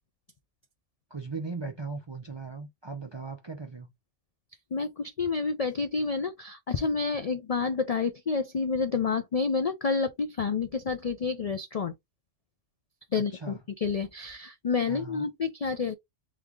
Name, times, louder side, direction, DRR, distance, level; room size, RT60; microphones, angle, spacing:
voice 1, 1.1-3.9 13.2-13.6 14.9-15.3, right 4 dB, 35° right, 0.4 m, -38 dB
voice 2, 4.7-11.9 13.1-15.9, left 5 dB, 60° left, 0.4 m, -29 dB
3.5 x 3.3 x 3.6 m
omnidirectional pair, 1.3 m